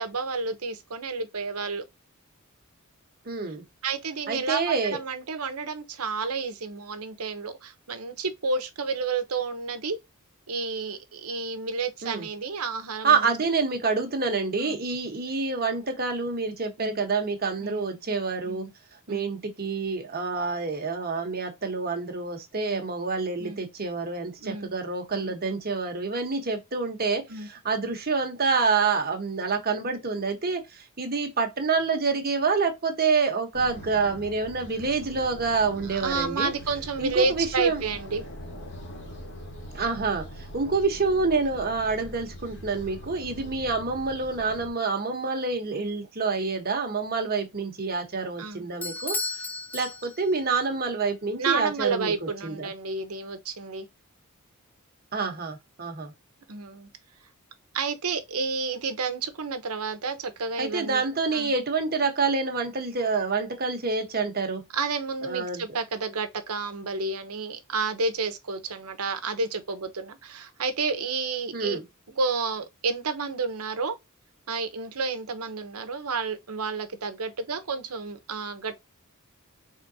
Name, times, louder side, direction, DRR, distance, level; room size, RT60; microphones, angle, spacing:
voice 1, 0.0-1.8 3.8-4.6 4.9-10.0 10.5-13.3 14.6-14.8 16.8-17.0 17.6-17.9 18.4-18.7 19.1-19.3 22.6-22.8 23.4-23.6 24.4-24.7 25.1-25.3 27.3-27.5 35.9-38.2 48.4-48.7 51.4-53.9 56.5-56.9 57.7-61.0 61.3-61.5 64.7-71.8 72.1-74.0 74.5-78.7, right 4 dB, 85° right, 1.0 m, -30 dB
voice 2, 3.2-3.6 4.3-5.0 12.0-12.3 13.0-18.6 19.1-36.5 37.0-37.8 39.7-49.2 49.7-52.7 55.1-56.1 60.6-64.6 65.2-65.6 71.5-71.8, right 4 dB, 45° right, 1.3 m, -27 dB
sound 1, 33.5-44.7, equal, 55° left, 2.1 m, -42 dB
Bell / Doorbell, 48.8-50.5, left 3 dB, 10° left, 0.4 m, -34 dB
4.9 x 3.7 x 2.8 m
head